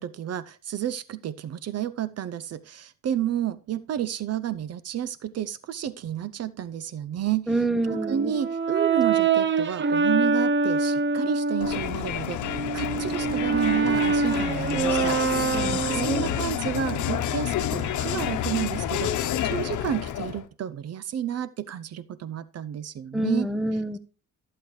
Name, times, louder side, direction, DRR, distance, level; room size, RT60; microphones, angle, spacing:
voice 1, 0.0-7.5 8.1-23.5, right 10 dB, 55° right, 0.6 m, -31 dB
voice 2, 7.5-8.3 15.5-16.2 23.1-24.0, right 1 dB, ahead, 0.8 m, -27 dB
Brass instrument, 7.9-11.8 12.4-16.5, right 4 dB, 40° right, 1.0 m, -25 dB
Crowd, 11.6-20.5, left 10 dB, 75° left, 1.0 m, -29 dB
14.0 x 7.6 x 3.2 m
cardioid pair, 90°, 30 cm